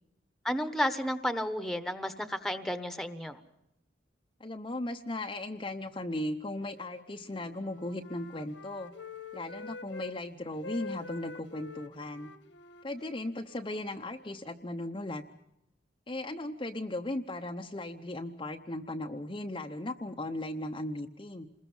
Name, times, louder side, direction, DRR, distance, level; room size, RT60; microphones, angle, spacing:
voice 1, 0.4-3.4, equal, ahead, 10 dB, 1.2 m, -32 dB
voice 2, 4.4-8.9 9.3-12.3 12.8-15.2 16.1-21.5, left 1 dB, 25° left, 3 dB, 0.8 m, -37 dB
Wind instrument woodwind instrument, 6.8-10.2 10.5-14.4, left 3 dB, 75° left, 1.6 m, -47 dB
27.5 x 21.5 x 5.5 m, 0.84 s
head